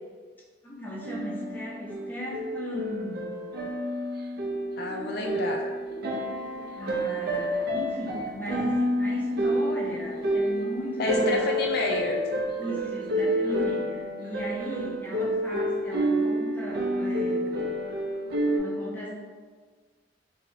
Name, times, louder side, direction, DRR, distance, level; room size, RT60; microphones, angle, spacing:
voice 1, 0.6-3.5 6.7-11.6 12.6-17.7 18.5-19.1, equal, 10° left, -5 dB, 0.6 m, -37 dB
sound 1, 1.0-18.6, equal, 60° right, 0.4 m, -29 dB
voice 2, 4.8-5.7 8.5-8.7 11.0-12.2, left 2 dB, 60° left, 1 dB, 0.3 m, -29 dB
3.0 x 2.7 x 2.5 m, 1.5 s
head